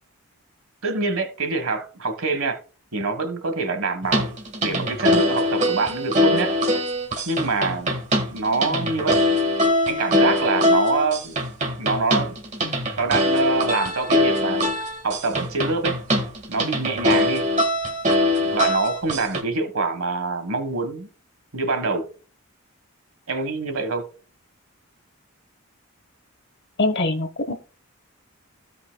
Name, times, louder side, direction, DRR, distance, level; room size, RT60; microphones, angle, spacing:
voice 1, 0.8-2.6 2.9-4.3 4.6-6.5 7.2-8.0 8.3-9.4 9.9-11.4 11.8-12.4 13.0-16.0 16.5-17.4 18.5-21.1 21.5-22.1 23.3-24.1, right 3 dB, 65° right, 1.5 m, -25 dB
sound 1, 4.0-19.4, left 1 dB, 30° right, 1.3 m, -22 dB
voice 2, 26.8-27.5, left 2 dB, 50° left, 0.9 m, -23 dB
15.5 x 5.3 x 2.2 m
head